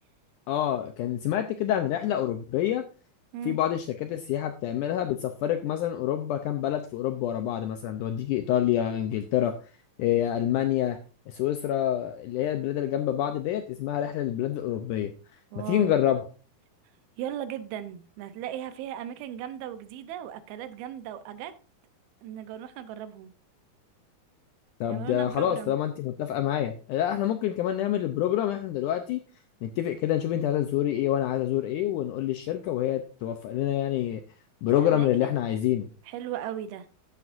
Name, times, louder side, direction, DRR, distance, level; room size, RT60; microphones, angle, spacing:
voice 1, 0.5-2.8 3.5-9.5 10.0-11.0 11.3-15.1 15.6-16.3 24.8-29.2 29.6-34.2 34.6-35.9, left 11 dB, 85° left, 1.8 m, -27 dB
voice 2, 15.5-16.0 17.2-21.5 22.2-23.3 24.9-25.7 34.7-35.3 36.1-36.9, right 10 dB, 85° right, 2.7 m, -37 dB
12.0 x 8.4 x 2.5 m
omnidirectional pair, 4.3 m